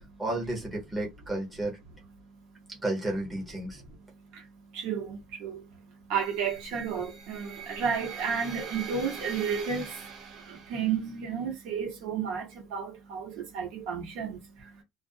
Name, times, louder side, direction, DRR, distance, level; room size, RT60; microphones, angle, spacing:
voice 1, 0.2-1.8 2.7-3.8, right 2 dB, 5° right, 0.8 m, -32 dB
voice 2, 4.7-5.6 6.1-9.9 10.5-14.4, right 6 dB, 70° right, 1.0 m, -32 dB
sound 1, 6.1-11.2, right 6 dB, 45° right, 0.6 m, -43 dB
2.4 x 2.0 x 2.5 m
cardioid pair, 170°, 0 cm